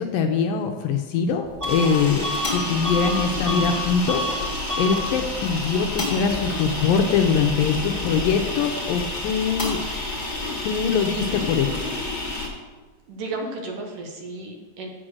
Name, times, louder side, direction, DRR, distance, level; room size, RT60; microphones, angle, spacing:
voice 1, 0.0-2.2 2.5-9.8 10.6-11.8, left 6 dB, 75° left, 4 dB, 2.2 m, -23 dB
sound 1, 1.4-12.5, left 2 dB, 50° left, 0.5 m, -29 dB
Bus / Alarm, 1.6-1.9 2.2-3.8 4.0-4.4 4.7-5.0, equal, 40° right, 1.0 m, -28 dB
voice 2, 13.1-14.9, right 2 dB, 65° right, 1 dB, 2.5 m, -33 dB
7.9 x 7.7 x 6.3 m, 1.3 s
omnidirectional pair, 4.3 m